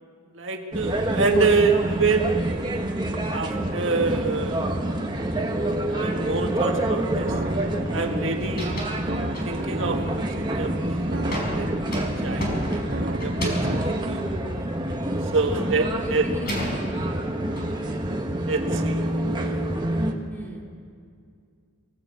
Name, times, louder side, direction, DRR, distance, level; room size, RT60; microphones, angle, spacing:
voice 1, 0.3-2.6 3.3-4.8 5.1-5.2 5.9-7.3 7.9-8.8 9.4-10.7 11.3-11.7 12.2-14.3 15.3-16.3 18.5-19.0, right 4 dB, 65° right, 3 dB, 1.7 m, -26 dB
sound 1, 0.7-20.1, right 1 dB, 20° right, 1.3 m, -27 dB
sound 2, 6.4-14.1, right 2 dB, 45° right, 0.7 m, -36 dB
sound 3, 7.9-8.2 8.4-9.0 9.3-9.8 10.3-10.7 11.3-15.3 15.7-17.7, equal, 45° left, 5.1 m, -33 dB
voice 2, 15.4-16.8 20.3-20.7, equal, 10° left, -1 dB, 2.7 m, -37 dB
25.0 x 16.5 x 8.5 m, 2.3 s
head